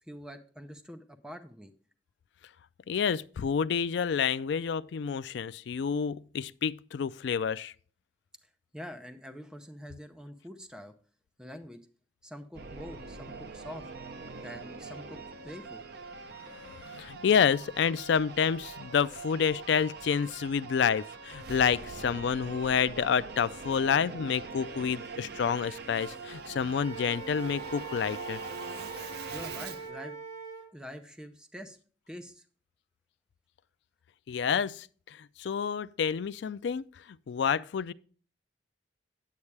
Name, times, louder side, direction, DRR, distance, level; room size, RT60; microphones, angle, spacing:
voice 1, 0.1-1.7 8.4-10.9 11.4-11.8 12.2-13.9 14.4-15.2 15.4-15.8 29.3-30.2 30.7-31.8 32.1-32.5, equal, 5° right, 0.6 m, -45 dB
voice 2, 2.9-7.7 16.5-28.4 34.3-36.8 37.3-37.9, left 7 dB, 65° left, 0.3 m, -29 dB
Singing / Musical instrument, 12.5-29.9, right 4 dB, 60° right, 0.6 m, -43 dB
Wind instrument woodwind instrument, 26.8-30.7, right 5 dB, 40° right, 4.3 m, -43 dB
9.5 x 8.5 x 3.3 m
head